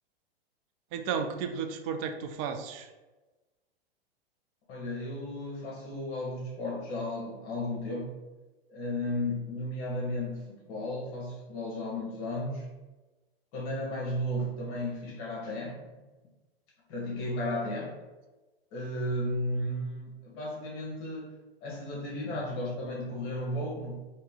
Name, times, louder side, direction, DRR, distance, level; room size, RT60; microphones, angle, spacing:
voice 1, 0.9-2.9 22.1-22.4, right 6 dB, 35° right, 6 dB, 0.4 m, -34 dB
voice 2, 4.7-8.1 8.7-12.7 13.5-16.0 16.9-18.0 18.7-21.3 21.6-23.9, left 1 dB, 40° left, -3 dB, 1.1 m, -34 dB
3.0 x 2.7 x 3.5 m, 1.2 s
hypercardioid pair, 105°, 31 cm